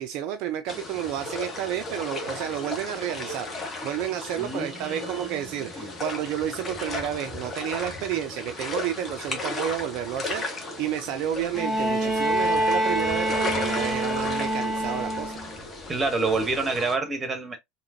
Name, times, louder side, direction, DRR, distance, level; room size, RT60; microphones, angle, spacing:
voice 1, 0.0-3.5 3.8-15.4, right 10 dB, 50° right, 0.4 m, -31 dB
sound 1, 0.7-16.9, left 2 dB, 25° left, 1.3 m, -35 dB
voice 2, 4.4-5.4 5.8-5.9 15.9-17.6, right 3 dB, 20° right, 1.1 m, -28 dB
Bowed string instrument, 11.5-15.6 16.8-16.9, right 1 dB, 5° left, 1.8 m, -26 dB
3.7 x 2.9 x 2.6 m
figure-of-eight pair, 75°, 0 cm